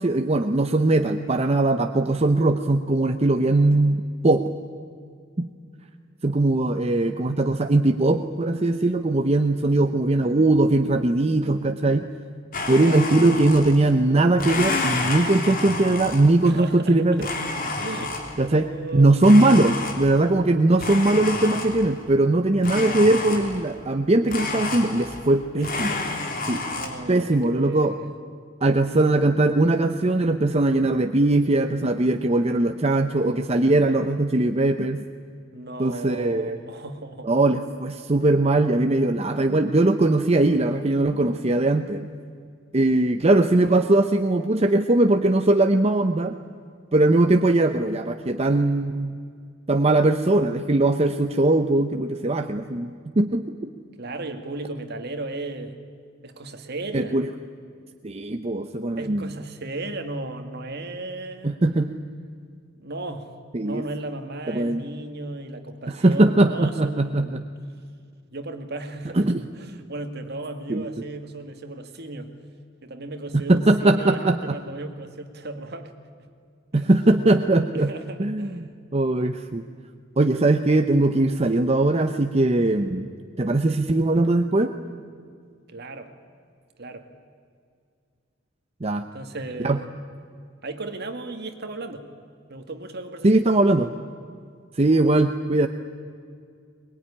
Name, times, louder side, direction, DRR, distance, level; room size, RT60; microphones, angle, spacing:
voice 1, 0.0-4.4 5.4-5.5 6.2-12.1 12.7-17.3 18.4-18.7 18.9-26.0 26.5-26.6 27.1-27.9 28.6-35.1 35.8-36.6 37.2-42.1 42.7-46.4 46.9-49.1 49.7-53.7 56.9-57.3 58.0-59.4 61.4-61.9 63.5-63.8 64.5-64.8 65.9-67.4 69.1-69.4 70.7-70.8 73.5-74.5 76.7-77.9 78.2-78.6 78.9-79.6 80.2-83.1 83.4-84.7 88.8-89.0 89.6-89.8 93.2-93.9 94.7-95.7, right 2 dB, 30° right, 6 dB, 0.8 m, -20 dB
Domestic sounds home sounds, 12.5-13.9 14.3-16.5 17.2-18.5 19.2-20.3 20.8-22.0 22.6-23.7 24.3-25.4 25.6-26.9, left 3 dB, 45° left, 3.4 m, -30 dB
voice 2, 12.7-13.0 16.4-17.3 17.7-18.1 18.4-19.4 22.7-23.0 25.5-25.8 26.7-28.1 35.5-37.3 54.0-55.8 56.2-57.2 59.0-61.5 62.8-63.3 63.6-67.4 68.3-69.3 69.5-72.3 72.8-75.9 76.7-76.9 77.7-78.7 85.7-86.1 86.8-87.1 89.1-89.9 90.6-92.0 92.5-93.3, right 2 dB, 55° right, 6 dB, 2.1 m, -35 dB
22.5 x 21.0 x 10.0 m, 2.2 s
head